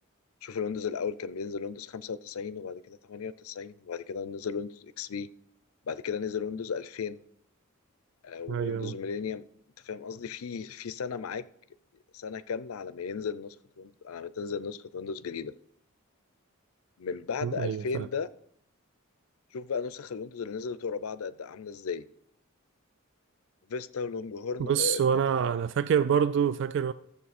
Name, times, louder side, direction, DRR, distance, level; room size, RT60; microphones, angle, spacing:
voice 1, 0.4-5.3 5.9-7.2 8.2-9.4 9.8-11.4 12.1-15.5 17.0-18.3 19.5-22.0 23.7-25.5, left 6 dB, 90° left, 0.5 m, -35 dB
voice 2, 8.5-8.9 17.4-18.1 24.6-26.9, right 8 dB, 60° right, 0.3 m, -26 dB
13.5 x 6.9 x 4.2 m
head